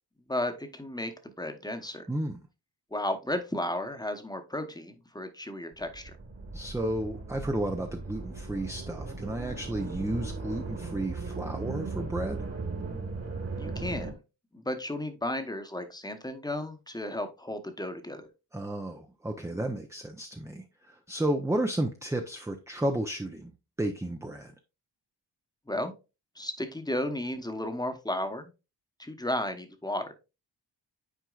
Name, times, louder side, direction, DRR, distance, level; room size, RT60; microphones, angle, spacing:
voice 1, 0.3-2.1 2.9-6.1 13.6-14.2 14.5-18.2 25.7-25.9 26.4-28.5 29.0-30.1, left 1 dB, 10° left, 1.0 m, -34 dB
voice 2, 2.1-2.4 6.5-12.4 18.5-23.5 23.8-24.5, right 1 dB, 5° right, 0.6 m, -32 dB
sound 1, 5.7-14.1, right 3 dB, 35° right, 1.6 m, -37 dB
9.3 x 4.4 x 2.4 m
cardioid pair, 100°, 44 cm